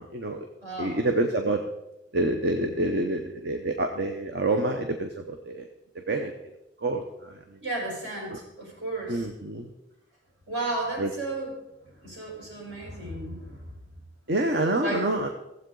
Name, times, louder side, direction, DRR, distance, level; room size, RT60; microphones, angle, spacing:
voice 1, 0.0-0.5 0.8-1.6 2.1-5.7 5.9-6.3 6.8-7.6 8.3-8.4 9.1-9.7 11.0-11.1 14.3-15.3, right 2 dB, 55° right, 4 dB, 0.8 m, -27 dB
voice 2, 0.6-1.0 7.6-9.3 10.5-11.5 11.9-13.7 14.8-15.0, right 2 dB, 70° right, -2 dB, 4.5 m, -33 dB
15.5 x 7.9 x 3.9 m, 0.93 s
head